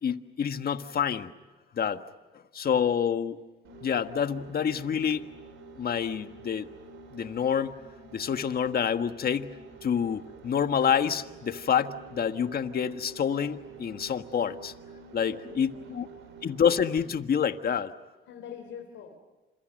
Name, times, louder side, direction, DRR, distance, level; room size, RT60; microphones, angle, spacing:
voice 1, 0.0-1.3 1.7-2.0 2.5-3.4 3.8-5.3 5.8-6.7 7.1-7.8 8.1-9.6 9.8-14.7 15.1-16.1 16.4-17.9, left 7 dB, 50° left, 9 dB, 1.5 m, -27 dB
sound 1, 3.6-17.2, right 4 dB, 80° right, 4.8 m, -49 dB
voice 2, 15.1-16.1 18.3-19.2, left 7 dB, 85° left, 3 dB, 3.4 m, -45 dB
29.0 x 27.5 x 6.6 m, 1.2 s
cardioid pair, 90°, 20 cm